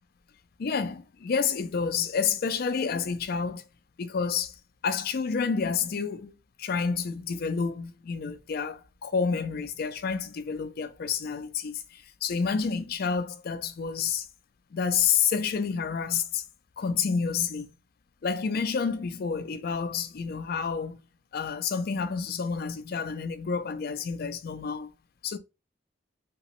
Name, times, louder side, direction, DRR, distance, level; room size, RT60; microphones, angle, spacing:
voice 1, 0.6-3.6 4.0-4.5 4.8-6.3 6.6-14.3 14.7-16.4 16.8-17.7 18.2-21.0 21.3-24.9 25.2-25.4, left 6 dB, 55° left, 0.4 m, -29 dB
2.9 x 2.9 x 3.0 m
head